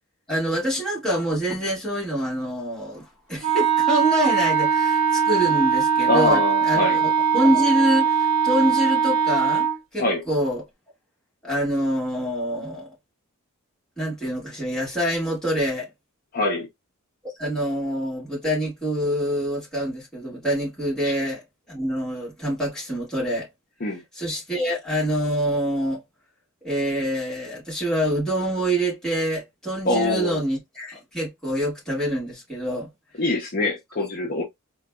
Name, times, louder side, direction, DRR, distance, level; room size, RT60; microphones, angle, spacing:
voice 1, 0.3-10.6 11.4-12.9 14.0-15.9 17.2-23.5 24.1-26.0 26.6-32.9, equal, 5° left, 1.5 m, -26 dB
Wind instrument woodwind instrument, 3.4-9.8, right 7 dB, 80° right, 0.9 m, -21 dB
voice 2, 6.1-7.0 10.0-10.2 16.3-16.7 21.0-21.1 23.8-24.0 29.8-30.4 33.2-34.4, left 2 dB, 40° left, 0.6 m, -24 dB
3.9 x 2.2 x 2.2 m
head